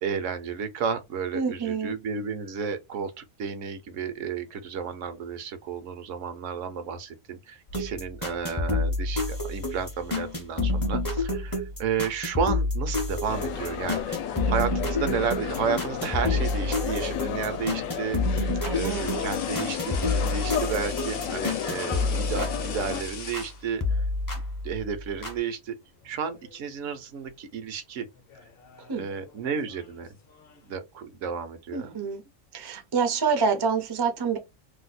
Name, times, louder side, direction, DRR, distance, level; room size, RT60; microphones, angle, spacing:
voice 1, 0.0-14.2 14.5-24.0 24.6-25.7 26.0-28.1 28.9-30.1 30.6-32.0, right 6 dB, 70° right, 1.0 m, -32 dB
voice 2, 1.3-1.9 18.6-19.1 28.9-29.1 31.7-32.2 32.5-34.4, right 5 dB, 35° right, 0.3 m, -27 dB
sound 1, 7.7-23.5 23.8-25.4, left 2 dB, 25° left, 0.5 m, -29 dB
sound 2, 13.3-23.0, left 9 dB, 80° left, 1.0 m, -33 dB
sound 3, 18.6-24.1 25.3-25.5 25.9-26.6 26.9-27.3 28.1-30.7, left 6 dB, 55° left, 0.8 m, -42 dB
2.7 x 2.1 x 4.0 m
omnidirectional pair, 1.4 m